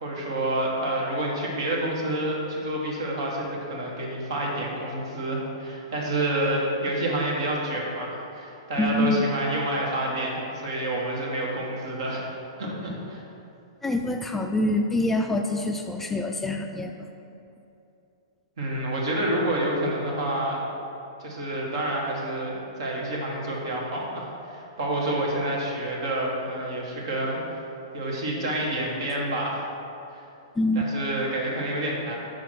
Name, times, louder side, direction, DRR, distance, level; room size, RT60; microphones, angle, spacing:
voice 1, 0.0-12.2 12.6-13.2 18.6-20.6 21.2-27.4 27.9-29.7 30.7-32.2, right 1 dB, 65° right, -2 dB, 1.5 m, -28 dB
voice 2, 8.8-9.2 13.8-16.9 30.6-30.9, left 1 dB, 10° left, 3 dB, 0.3 m, -25 dB
5.1 x 4.6 x 6.0 m, 2.7 s
hypercardioid pair, 120°, 3 cm